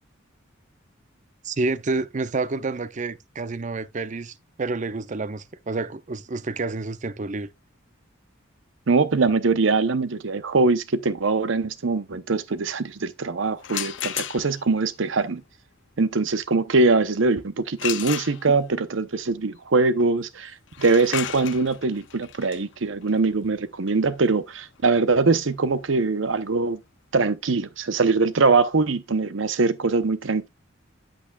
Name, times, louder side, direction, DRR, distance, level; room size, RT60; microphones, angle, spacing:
voice 1, 1.4-7.5, right 3 dB, 40° right, 0.5 m, -29 dB
voice 2, 8.9-15.4 16.0-26.8 27.1-30.5, right 3 dB, 70° right, 0.8 m, -22 dB
sound 1, 13.6-14.8 17.8-18.8 20.7-26.4, left 11 dB, 60° left, 0.6 m, -35 dB
8.4 x 8.2 x 2.3 m
head